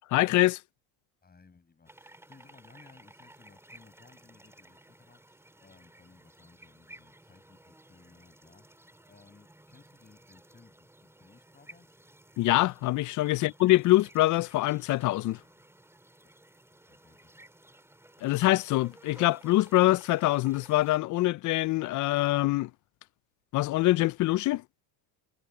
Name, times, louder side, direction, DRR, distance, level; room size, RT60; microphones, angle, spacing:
voice 1, 0.1-0.6 12.4-15.4 18.2-22.7 23.5-24.6, left 17 dB, 45° left, 0.4 m, -24 dB
voice 2, 1.2-12.0 16.2-16.3 16.8-17.3, left 4 dB, 20° left, 7.2 m, -59 dB
sound 1, 1.8-21.0, right 1 dB, 5° right, 3.8 m, -56 dB
cardioid pair, 120°, 43 cm